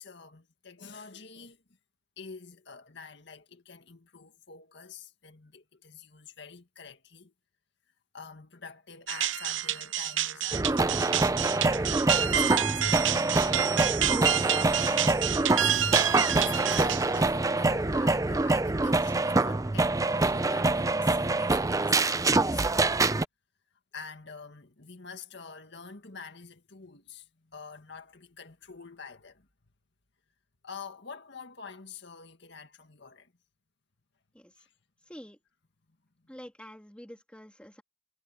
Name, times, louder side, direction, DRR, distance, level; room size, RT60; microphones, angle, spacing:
voice 1, 0.0-1.6 2.2-7.3 8.1-11.1 11.5-14.1 14.8-15.3 15.6-23.0 23.9-29.5 30.6-33.3 34.6-34.7, left 5 dB, 60° left, 2.1 m, -46 dB
sound 1, 9.1-17.3, right 10 dB, 75° right, 0.8 m, -29 dB
sound 2, 10.5-23.2, right 2 dB, 15° right, 0.5 m, -25 dB
voice 2, 35.1-35.4 36.3-37.8, equal, 5° left, 2.9 m, -47 dB
head